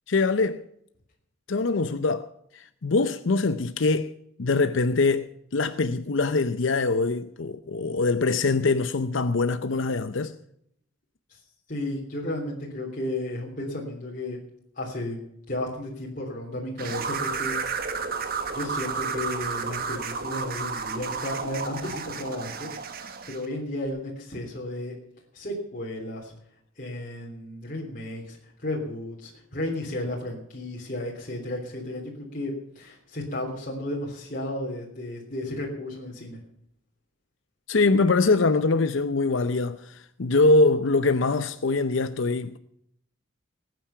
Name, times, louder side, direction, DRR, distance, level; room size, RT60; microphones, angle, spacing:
voice 1, 0.1-0.6 1.5-4.1 4.4-10.4 37.7-42.6, left 3 dB, 70° left, 0.7 m, -23 dB
voice 2, 11.7-14.4 14.7-15.2 15.5-17.6 18.2-22.7 23.0-24.9 25.3-26.3 26.8-36.4, left 1 dB, 45° left, 3.3 m, -33 dB
sound 1, 16.8-23.4, right 5 dB, 50° right, 1.5 m, -32 dB
19.5 x 9.3 x 5.7 m
head